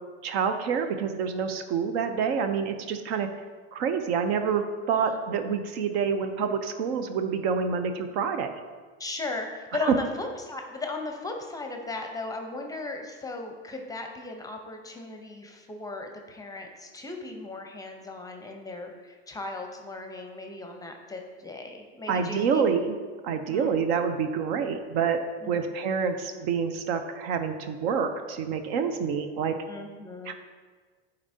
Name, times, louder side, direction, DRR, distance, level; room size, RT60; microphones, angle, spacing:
voice 1, 0.2-3.3 3.7-8.5 22.1-22.9 23.2-25.2 25.5-29.5 30.3-30.4, right 6 dB, 65° right, 8 dB, 0.7 m, -27 dB
voice 2, 9.0-22.7 23.5-23.8 24.5-24.8 25.4-25.7 29.7-30.3, left 3 dB, 10° left, 3 dB, 0.7 m, -37 dB
9.9 x 4.1 x 2.7 m, 1.5 s
hypercardioid pair, 100°, 34 cm